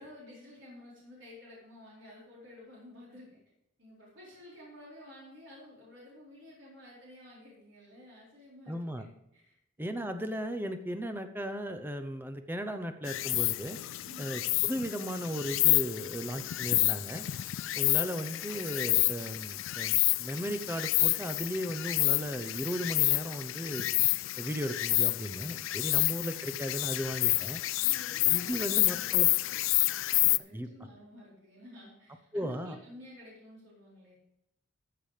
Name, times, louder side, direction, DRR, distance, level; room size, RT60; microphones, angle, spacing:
voice 1, 0.0-3.4 3.8-10.1 14.0-14.4 27.8-29.6 30.1-34.2, left 1 dB, 65° right, -6 dB, 4.4 m, -52 dB
voice 2, 8.7-9.0 9.8-13.8 14.2-17.2 17.8-23.9 24.4-27.6 28.3-29.3 30.5-30.7 32.3-32.8, equal, 10° right, 8 dB, 0.7 m, -36 dB
Insect, 13.1-30.4, left 19 dB, 70° left, 0.4 m, -29 dB
13.5 x 6.8 x 5.0 m, 0.82 s
head